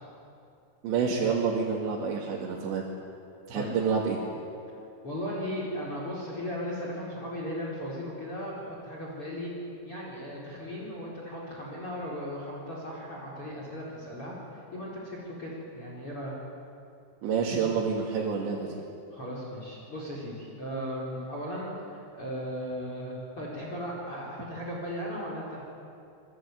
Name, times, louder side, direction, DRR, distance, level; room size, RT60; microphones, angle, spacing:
voice 1, 0.8-2.8 3.5-4.2 17.2-18.8, right 5 dB, 75° right, -3 dB, 4.7 m, -28 dB
voice 2, 5.0-9.5 9.9-16.3 19.1-25.6, equal, 30° left, -3 dB, 5.2 m, -37 dB
28.0 x 22.0 x 9.4 m, 2.6 s
omnidirectional pair, 5.2 m